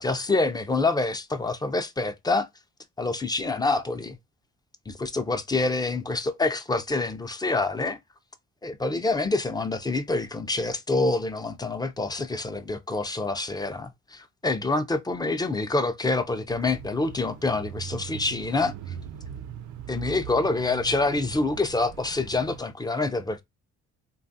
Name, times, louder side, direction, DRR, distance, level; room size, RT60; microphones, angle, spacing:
voice 1, 0.0-2.5 3.0-4.2 4.9-8.0 8.6-18.7 19.9-23.4, left 3 dB, 15° left, 0.4 m, -26 dB
Bicycle / Mechanisms, 16.5-22.6, right 9 dB, 75° right, 0.5 m, -40 dB
3.1 x 2.3 x 2.6 m
cardioid pair, 90°, 30 cm